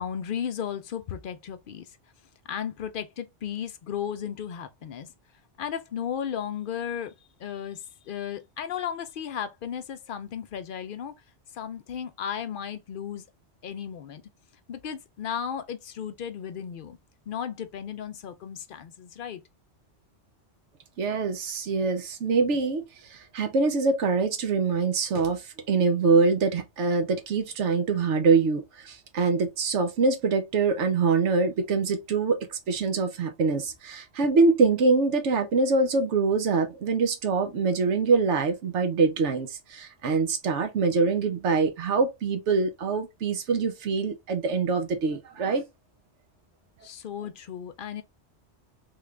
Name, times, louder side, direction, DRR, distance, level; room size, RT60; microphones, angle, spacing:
voice 1, 0.0-2.0 2.5-5.1 5.6-7.1 7.4-11.1 11.5-13.2 13.6-14.2 14.7-17.0 17.3-19.4 46.8-48.0, left 8 dB, 60° left, 0.6 m, -34 dB
voice 2, 21.0-45.6, right 4 dB, 85° right, 1.0 m, -24 dB
3.6 x 2.4 x 3.2 m
omnidirectional pair, 1.2 m